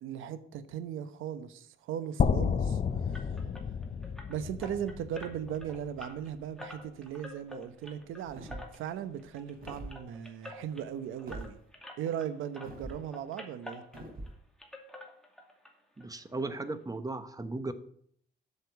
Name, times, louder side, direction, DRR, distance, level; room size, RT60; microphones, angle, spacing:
voice 1, 0.0-2.8 3.1-3.3 4.3-11.6 12.0-13.8, right 9 dB, 85° right, 12 dB, 1.0 m, -38 dB
sound 1, 2.2-6.2, left 6 dB, 35° left, 0.6 m, -31 dB
sound 2, 3.1-12.3 12.5-14.3 14.6-15.7 16.0-16.1 16.5-16.6 17.0-17.1, left 1 dB, 5° left, 2.4 m, -48 dB
sound 3, 8.2-8.8 9.5-10.0 11.3-11.5 12.6-13.0 13.9-14.3, right 1 dB, 45° right, 3.9 m, -43 dB
voice 2, 16.0-17.7, right 2 dB, 20° right, 11 dB, 1.1 m, -36 dB
8.3 x 6.8 x 8.1 m, 0.65 s
cardioid pair, 90°, 20 cm